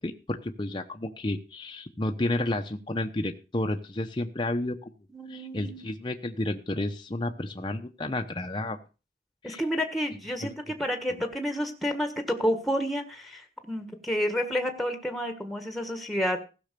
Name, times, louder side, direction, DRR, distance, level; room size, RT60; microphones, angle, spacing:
voice 1, 0.0-4.9 5.3-8.8 9.4-9.6 10.4-10.5, left 1 dB, 25° left, 4 dB, 0.8 m, -31 dB
voice 2, 5.1-6.0 9.4-16.4, equal, ahead, 6 dB, 1.5 m, -30 dB
15.5 x 6.2 x 6.8 m, 0.33 s
head